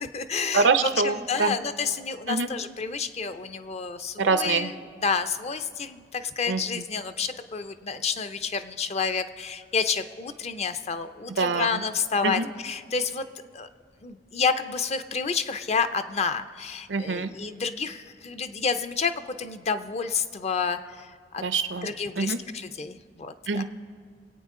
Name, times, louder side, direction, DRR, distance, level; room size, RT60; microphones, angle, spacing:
voice 1, 0.0-13.2 13.5-13.7 14.0-21.4 21.8-23.6, left 5 dB, 35° left, 10 dB, 0.5 m, -29 dB
voice 2, 0.5-1.6 2.3-2.5 4.2-4.7 6.5-6.6 11.4-11.8 12.2-12.5 16.9-17.3 21.4-21.9 22.2-22.4 23.5-23.6, right 4 dB, 85° right, 10 dB, 0.7 m, -24 dB
24.5 x 8.8 x 3.7 m, 2.1 s
head